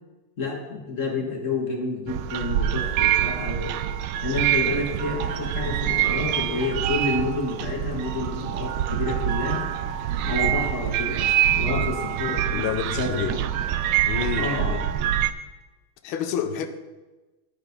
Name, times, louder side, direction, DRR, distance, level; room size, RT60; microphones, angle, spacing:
voice 1, 0.4-3.7 4.2-9.7 10.2-13.5 14.4-14.8, left 3 dB, 40° left, 0 dB, 1.6 m, -29 dB
sound 1, 2.1-15.3, right 11 dB, 90° right, 0.9 m, -25 dB
sound 2, 4.3-12.2, right 3 dB, 50° right, 0.6 m, -45 dB
voice 2, 12.5-13.4 14.0-14.8 16.0-16.7, left 9 dB, 75° left, 8 dB, 1.6 m, -29 dB
10.0 x 7.0 x 5.2 m, 1.1 s
omnidirectional pair, 2.4 m